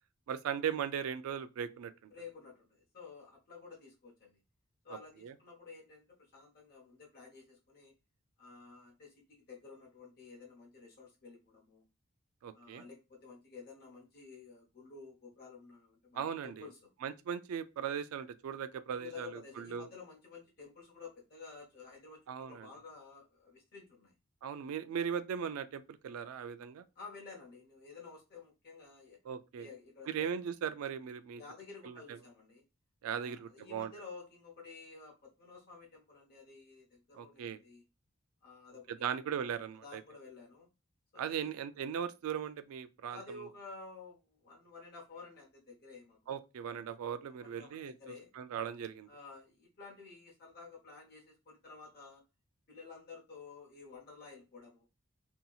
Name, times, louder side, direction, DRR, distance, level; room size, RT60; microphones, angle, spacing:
voice 1, 0.3-2.1 4.9-5.3 12.4-12.8 16.1-16.7 17.0-19.9 22.3-22.7 24.4-26.8 29.2-29.7 30.1-31.4 31.8-32.2 33.0-33.9 37.1-37.6 39.0-40.0 41.2-43.5 46.3-47.9 48.4-49.1, right 8 dB, 90° right, 0.3 m, -38 dB
voice 2, 2.1-4.4 4.8-7.9 8.4-11.8 12.5-16.9 19.0-24.1 27.0-29.2 29.6-30.3 31.4-32.6 33.2-37.8 38.4-39.1 39.8-40.7 41.1-41.5 43.0-46.3 47.3-48.3 49.1-52.2 52.7-54.8, left 4 dB, 50° left, 0.8 m, -52 dB
2.8 x 2.8 x 2.3 m
head